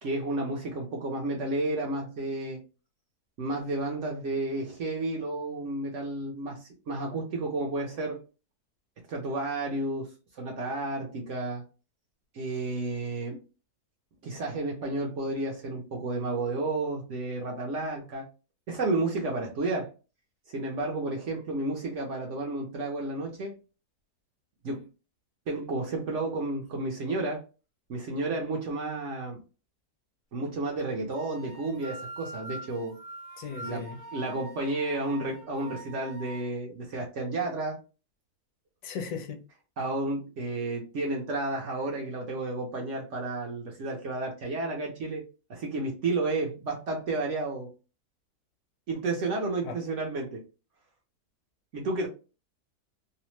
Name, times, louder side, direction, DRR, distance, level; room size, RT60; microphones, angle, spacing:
voice 1, 0.0-2.6 3.4-8.2 9.1-10.1 10.4-11.6 12.3-13.4 14.2-18.3 18.7-19.9 20.5-23.5 24.6-24.9 25.5-27.4 27.9-29.4 30.3-33.0 33.6-37.8 39.8-45.2 45.5-47.7 48.9-50.4 51.7-52.1, right 2 dB, 60° right, 0.8 m, -31 dB
sound 1, 31.1-36.4, right 2 dB, 45° right, 1.2 m, -44 dB
voice 2, 33.4-34.0 38.8-39.4 49.6-49.8, left 5 dB, 75° left, 1.1 m, -36 dB
2.7 x 2.0 x 3.0 m
omnidirectional pair, 1.7 m